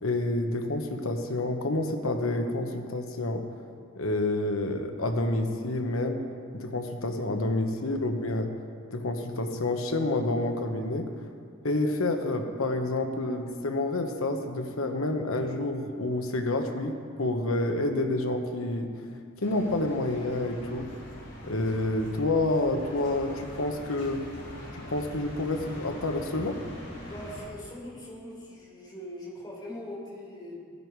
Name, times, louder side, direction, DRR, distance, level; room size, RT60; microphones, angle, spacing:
voice 1, 0.0-3.4 3.9-6.2 6.5-8.5 8.9-11.1 11.6-19.2 19.4-20.9 21.4-24.2 24.7-26.6, left 2 dB, 85° left, 5 dB, 1.1 m, -29 dB
sound 1, 19.4-27.4, equal, 60° left, 4.6 m, -43 dB
voice 2, 27.0-30.6, left 1 dB, 20° left, -5 dB, 4.0 m, -41 dB
18.0 x 10.5 x 4.7 m, 2.2 s
head